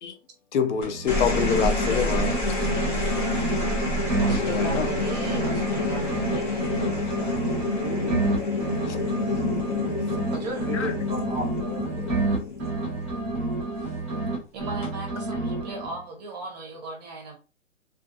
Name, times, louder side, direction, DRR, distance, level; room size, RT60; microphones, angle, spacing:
voice 1, 0.5-2.4 4.3-4.9 8.9-9.0 10.7-10.9, left 7 dB, 65° left, 0.5 m, -26 dB
sound 1, 0.7-2.3 2.6-6.3 6.6-10.3 10.6-14.3 14.6-16.0, right 3 dB, 10° right, 0.3 m, -29 dB
sound 2, 0.8-13.4 14.6-15.1, left 2 dB, 40° left, 1.0 m, -28 dB
voice 2, 4.2-7.5 9.3-9.4 10.3-10.7 14.5-17.4, right 3 dB, 35° right, 0.7 m, -37 dB
voice 3, 7.6-8.2 10.5-12.1, left 1 dB, 5° left, 0.7 m, -36 dB
2.5 x 2.3 x 2.5 m
hypercardioid pair, 155°, 38 cm